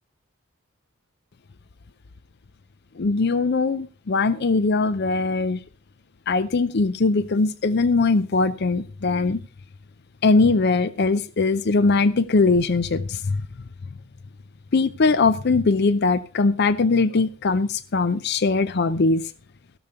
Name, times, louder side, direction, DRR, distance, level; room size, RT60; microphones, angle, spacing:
voice 1, 3.0-5.6 6.3-9.4 10.2-13.4 14.7-19.2, left 3 dB, 50° left, 14 dB, 0.5 m, -21 dB
16.0 x 6.8 x 5.7 m, 0.38 s
head